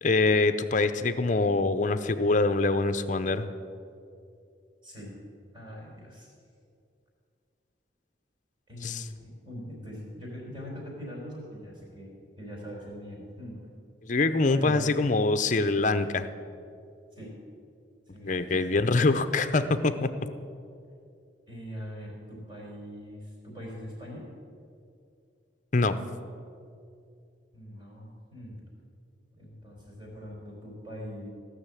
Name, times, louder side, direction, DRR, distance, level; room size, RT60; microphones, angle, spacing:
voice 1, 0.0-3.5 8.8-9.0 14.0-16.3 18.2-20.1 25.7-26.0, left 3 dB, 40° left, 10 dB, 0.6 m, -24 dB
voice 2, 4.8-5.2 5.5-6.3 8.7-13.6 14.5-14.9 17.1-17.3 18.1-19.0 21.5-24.3 27.5-28.6 29.4-31.3, equal, 25° right, -4 dB, 4.2 m, -42 dB
16.5 x 6.4 x 8.4 m, 2.4 s
head